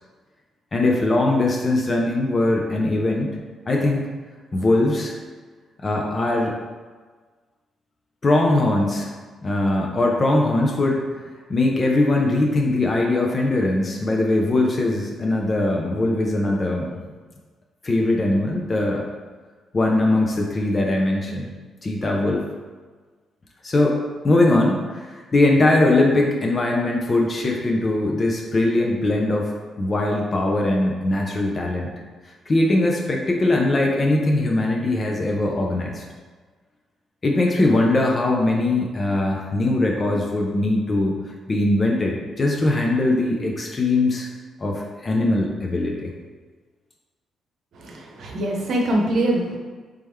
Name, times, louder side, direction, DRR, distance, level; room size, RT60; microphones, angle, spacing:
voice 1, 0.7-3.4 3.7-4.1 4.5-5.1 5.8-6.6 8.2-9.1 9.4-11.0 11.5-16.9 17.8-19.1 19.7-21.5 21.8-22.4 23.6-24.0 24.2-29.5 29.8-31.9 32.5-36.0 37.2-41.2 41.5-44.3 44.6-46.1, left 2 dB, 40° left, -1 dB, 0.6 m, -21 dB
voice 2, 47.7-49.6, right 1 dB, 65° right, 0 dB, 0.8 m, -23 dB
3.4 x 3.0 x 3.5 m, 1.4 s
hypercardioid pair, 50°, 0 cm